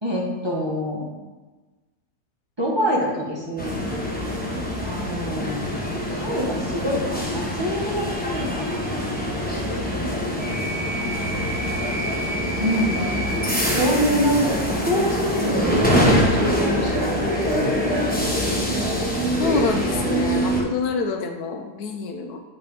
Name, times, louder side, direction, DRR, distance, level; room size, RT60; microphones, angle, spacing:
voice 1, 0.0-1.1 2.6-3.8 4.8-5.7 6.1-9.9 12.6-13.1 13.6-15.7 15.9-18.7, equal, 15° right, -5 dB, 1.2 m, -26 dB
sound 1, 3.6-20.6, equal, 10° left, 0.6 m, -24 dB
voice 2, 19.4-22.4, left 4 dB, 75° left, 5 dB, 1.1 m, -27 dB
8.8 x 3.4 x 5.2 m, 1.2 s
omnidirectional pair, 1.7 m